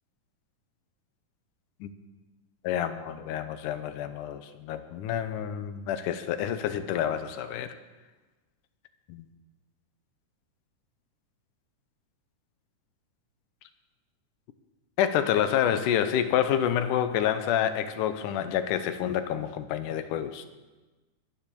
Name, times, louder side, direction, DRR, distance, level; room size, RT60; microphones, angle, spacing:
voice 1, 2.6-7.7 9.1-9.3 15.0-20.5, left 9 dB, 85° left, 10 dB, 2.4 m, -28 dB
22.0 x 7.4 x 6.8 m, 1.2 s
omnidirectional pair, 3.7 m